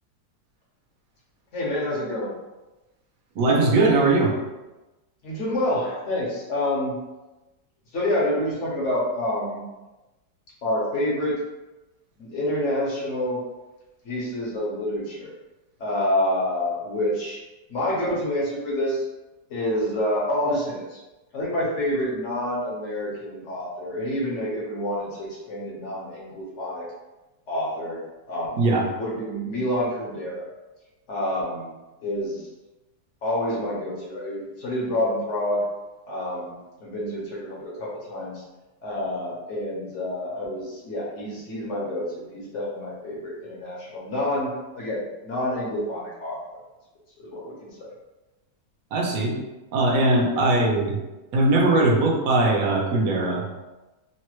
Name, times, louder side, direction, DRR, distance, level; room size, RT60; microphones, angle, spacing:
voice 1, 1.5-2.3 5.2-7.0 7.9-9.6 10.6-11.4 12.2-13.4 14.0-15.3 15.8-17.4 17.7-19.0 19.5-21.0 21.3-26.9 27.5-28.0 28.3-28.6 29.0-30.5 31.1-31.7 32.0-32.5 33.2-35.6 36.1-36.5 36.8-38.4 38.8-46.4 47.2-47.9 50.3-50.5, left 1 dB, 55° left, -5 dB, 0.9 m, -28 dB
voice 2, 3.4-4.3 28.6-28.8 48.9-49.3 49.7-51.0 51.3-53.4, right 2 dB, 60° right, -1 dB, 0.9 m, -20 dB
3.1 x 2.1 x 3.0 m, 1.1 s
omnidirectional pair, 1.9 m